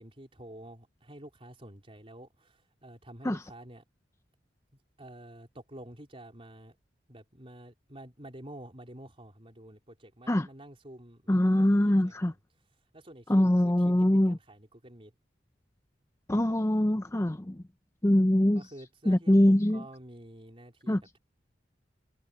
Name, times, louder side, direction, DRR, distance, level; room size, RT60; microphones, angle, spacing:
voice 1, 0.0-3.8 4.7-6.8 7.1-12.4 12.9-15.1 18.5-21.2, right 1 dB, 30° right, 3.9 m, -49 dB
voice 2, 11.3-12.3 13.3-14.4 16.3-17.6 18.0-18.6 19.1-19.8 20.9-21.0, left 1 dB, 15° left, 0.6 m, -23 dB
head